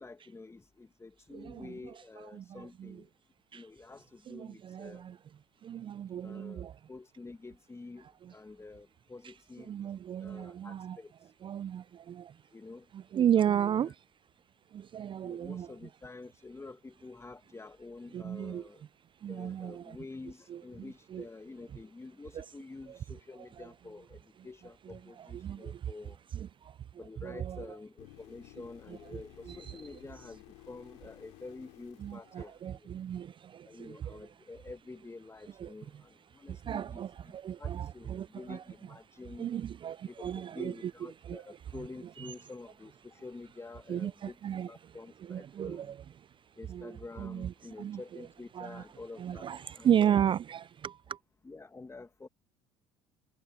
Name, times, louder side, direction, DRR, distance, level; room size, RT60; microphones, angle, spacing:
voice 1, 0.0-3.1 3.5-5.0 6.2-9.9 10.2-11.1 12.5-12.9 13.4-13.9 15.2-18.8 19.3-26.2 27.0-32.9 33.6-39.5 40.1-44.4 44.7-45.9 46.6-50.2 51.4-52.3, left 3 dB, 20° left, 1.9 m, -48 dB
voice 2, 1.3-3.0 3.5-3.7 4.3-5.2 5.6-6.8 8.2-8.3 9.6-11.0 11.4-12.4 12.9-14.0 14.7-15.7 18.1-18.7 19.2-20.0 20.5-21.2 22.3-22.5 22.9-23.0 23.4-23.7 24.9-25.9 26.3-27.7 29.1-29.8 32.0-34.3 35.6-35.7 36.3-38.6 39.4-40.9 41.2-41.4 42.2-42.3 43.9-45.0 45.2-46.4 46.7-48.0 48.5-48.8 49.2-51.2, right 9 dB, 35° right, 0.4 m, -35 dB
sound 1, 28.0-33.0 37.0-37.1, left 26 dB, 75° left, 2.8 m, -55 dB
hypercardioid pair, 75°, 15 cm